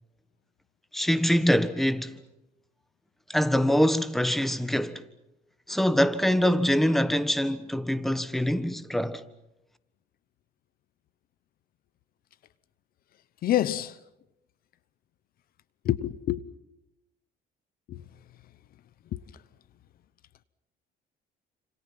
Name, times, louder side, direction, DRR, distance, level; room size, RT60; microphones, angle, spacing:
voice 1, 0.9-2.2 3.3-5.0 5.7-9.2, equal, ahead, 1.4 m, -24 dB
voice 2, 13.4-14.0 15.8-16.4 17.9-18.0 19.1-19.4, left 13 dB, 60° left, 0.9 m, -27 dB
29.5 x 27.0 x 5.9 m
cardioid pair, 110°, 17 cm